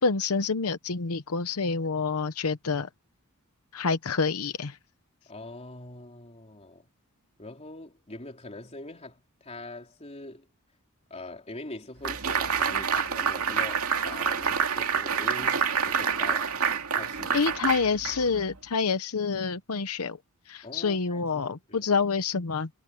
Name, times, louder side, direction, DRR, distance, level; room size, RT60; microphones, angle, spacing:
voice 1, 0.0-2.9 3.7-4.8 17.3-20.2 20.5-22.7, left 4 dB, 85° left, 0.9 m, -27 dB
voice 2, 5.3-6.9 7.4-10.5 11.1-16.6 17.0-17.4 20.6-21.9, left 2 dB, 30° left, 3.6 m, -43 dB
sound 1, 12.0-18.5, right 6 dB, 75° right, 2.5 m, -27 dB
head